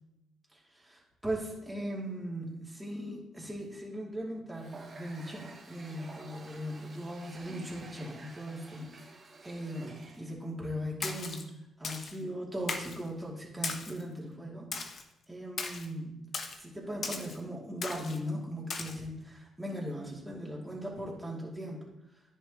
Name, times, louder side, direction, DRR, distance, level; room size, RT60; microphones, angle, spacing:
voice 1, 0.5-9.0 9.4-14.7 15.3-16.2 16.6-21.8, equal, 10° right, -4 dB, 2.6 m, -39 dB
Water tap faucet, 4.5-10.3, right 3 dB, 45° right, 1.9 m, -51 dB
Splash splatter, 11.0-11.4 11.8-12.2 12.7-13.0 13.6-14.0 14.7-15.0 15.6-15.9 16.3-16.6 17.0-17.4 17.8-18.2 18.7-18.9, left 4 dB, 50° left, 1.0 m, -37 dB
10.0 x 6.7 x 3.0 m, 0.92 s
cardioid pair, 90°, 0 cm